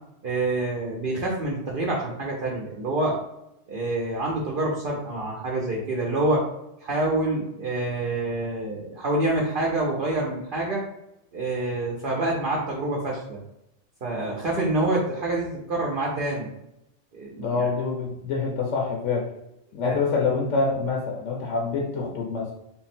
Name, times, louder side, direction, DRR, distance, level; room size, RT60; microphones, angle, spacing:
voice 1, 0.2-3.2 3.7-6.5 6.8-10.9 11.3-13.4 14.0-16.5 17.1-17.7 19.8-19.9, right 2 dB, 55° right, -3 dB, 0.7 m, -27 dB
voice 2, 17.4-19.3 19.7-22.5, left 4 dB, 80° left, 0 dB, 1.0 m, -26 dB
3.7 x 2.0 x 4.2 m, 0.84 s
omnidirectional pair, 1.2 m